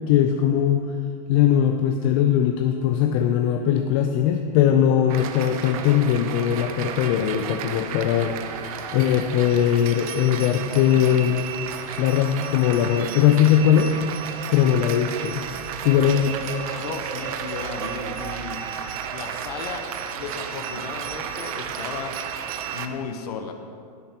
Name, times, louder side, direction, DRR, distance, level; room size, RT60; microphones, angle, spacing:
voice 1, 0.1-0.9 1.3-11.4 12.0-13.9 14.5-15.5 15.8-16.4, left 10 dB, 50° left, 5 dB, 0.6 m, -20 dB
sound 1, 5.1-22.9, right 8 dB, 60° right, 0.8 m, -33 dB
voice 2, 16.8-18.6 19.1-19.9 20.1-22.1 22.7-23.5, left 6 dB, 75° left, 5 dB, 1.0 m, -35 dB
16.5 x 8.5 x 3.0 m, 2.3 s
hypercardioid pair, 130°, 20 cm